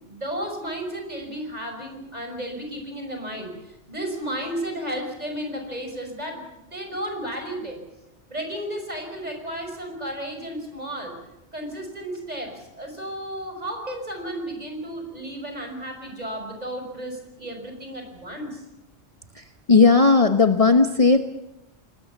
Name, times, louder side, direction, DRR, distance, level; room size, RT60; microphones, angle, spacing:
voice 1, 0.0-3.5 3.9-7.8 8.3-11.1 11.5-18.6, right 1 dB, 35° right, 4 dB, 6.0 m, -33 dB
voice 2, 19.7-21.2, left 4 dB, 35° left, 7 dB, 1.1 m, -15 dB
28.0 x 20.0 x 7.3 m, 0.89 s
omnidirectional pair, 1.1 m